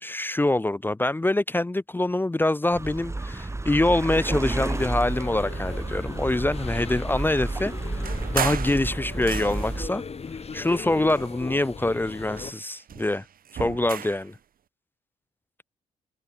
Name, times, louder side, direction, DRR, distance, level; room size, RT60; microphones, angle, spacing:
voice 1, 0.0-8.0 8.3-10.0 10.5-13.2 13.6-14.4, left 2 dB, 10° left, 0.6 m, -25 dB
sound 1, 2.7-9.9, right 2 dB, 15° right, 1.3 m, -31 dB
sound 2, 4.6-12.5, left 5 dB, 35° left, 1.9 m, -38 dB
sound 3, 8.0-9.9 10.6-11.7 12.1-14.3, right 9 dB, 55° right, 2.6 m, -35 dB
hypercardioid pair, 40°, 17 cm